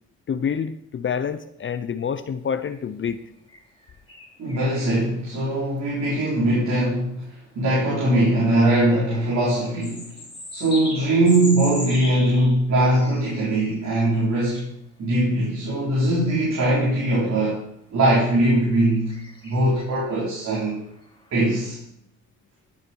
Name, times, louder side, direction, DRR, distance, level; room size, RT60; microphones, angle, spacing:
voice 1, 0.3-3.2, left 7 dB, 40° left, 12 dB, 0.7 m, -27 dB
sound 1, 2.7-2.8 3.5-5.3 5.8-5.9 8.3-14.6 15.6-15.8 16.3-16.4 18.2-21.7, left 1 dB, 15° left, 4.3 m, -40 dB
voice 2, 4.4-10.1 10.5-14.7 15.0-17.6 17.9-19.2 19.4-20.8 21.3-21.8, right 1 dB, 65° right, -6 dB, 4.4 m, -21 dB
14.0 x 8.6 x 4.6 m, 0.75 s
cardioid pair, 90°, 30 cm